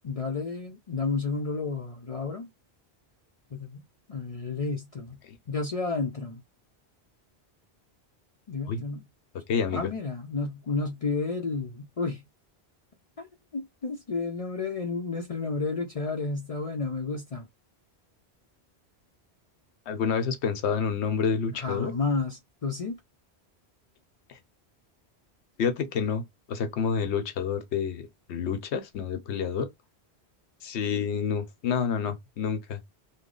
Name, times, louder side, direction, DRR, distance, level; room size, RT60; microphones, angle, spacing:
voice 1, 0.0-2.5 3.5-3.8 4.1-5.2 5.5-6.4 8.5-9.0 9.7-12.2 13.2-13.3 13.5-17.5 21.6-23.0, left 4 dB, 45° left, 0.5 m, -31 dB
voice 2, 9.5-9.9 19.9-21.9 24.3-24.4 25.6-26.2 26.5-29.7 30.6-32.8, left 6 dB, 90° left, 1.0 m, -28 dB
3.1 x 2.1 x 3.7 m
omnidirectional pair, 1.1 m